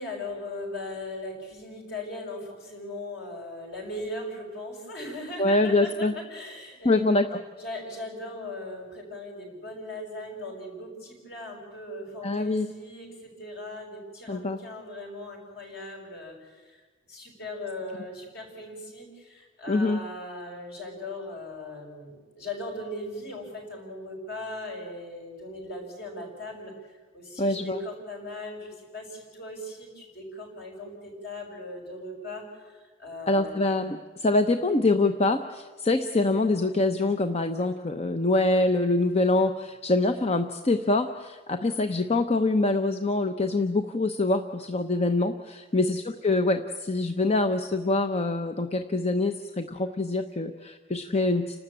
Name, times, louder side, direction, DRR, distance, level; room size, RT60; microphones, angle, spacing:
voice 1, 0.0-7.1 7.6-16.8 17.1-26.7 27.1-33.6 45.7-46.0, left 1 dB, 55° left, 1 dB, 6.7 m, -39 dB
voice 2, 5.4-6.2 6.8-7.4 12.2-12.7 14.3-14.6 19.7-20.0 27.4-27.8 33.3-51.6, left 2 dB, 35° left, 7 dB, 0.8 m, -25 dB
30.0 x 13.0 x 8.8 m, 1.3 s
head